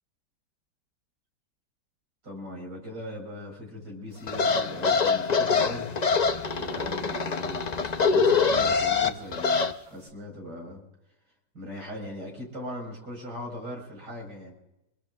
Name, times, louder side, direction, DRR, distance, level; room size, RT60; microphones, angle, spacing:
voice 1, 2.2-6.2 6.6-10.8 11.5-14.5, left 1 dB, 70° right, 1 dB, 5.5 m, -40 dB
sound 1, 4.3-9.7, left 5 dB, 80° left, 0.3 m, -24 dB
26.0 x 21.5 x 2.4 m, 0.88 s
omnidirectional pair, 2.0 m